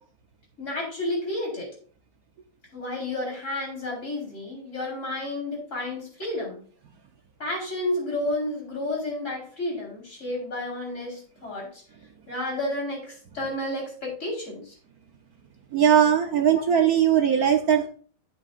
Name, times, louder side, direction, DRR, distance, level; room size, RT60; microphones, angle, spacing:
voice 1, 0.6-1.7 2.7-6.6 7.4-11.8 12.3-14.8 16.5-16.6, left 1 dB, 35° left, -3 dB, 4.6 m, -31 dB
voice 2, 15.7-17.9, right 9 dB, 60° right, 5 dB, 1.1 m, -19 dB
11.0 x 8.2 x 2.5 m, 0.43 s
omnidirectional pair, 2.1 m